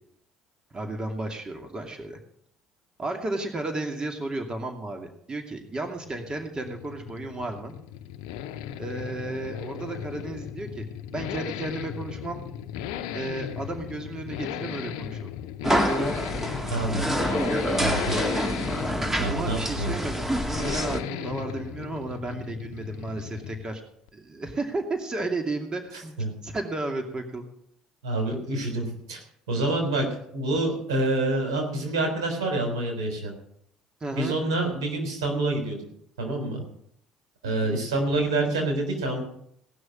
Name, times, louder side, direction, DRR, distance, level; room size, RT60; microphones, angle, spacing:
voice 1, 0.7-2.2 3.0-7.7 8.8-10.9 11.1-12.4 13.1-15.3 18.0-18.2 19.3-23.8 24.1-27.4 30.0-30.1 34.0-34.3 37.4-37.8, right 2 dB, 30° right, 4 dB, 2.5 m, -33 dB
Accelerating revving vroom, 5.6-23.8 24.1-24.2, left 10 dB, 80° left, 0.7 m, -36 dB
sound 1, 15.6-21.0, equal, 10° right, 1.9 m, -27 dB
voice 2, 16.7-17.1 17.8-18.1 19.2-19.9 25.9-26.4 28.0-30.1 30.3-33.3 34.1-35.8 36.2-36.6 37.4-39.2, right 2 dB, 85° right, 2 dB, 3.7 m, -27 dB
18.0 x 6.2 x 7.7 m, 0.71 s
hypercardioid pair, 65°, 3 cm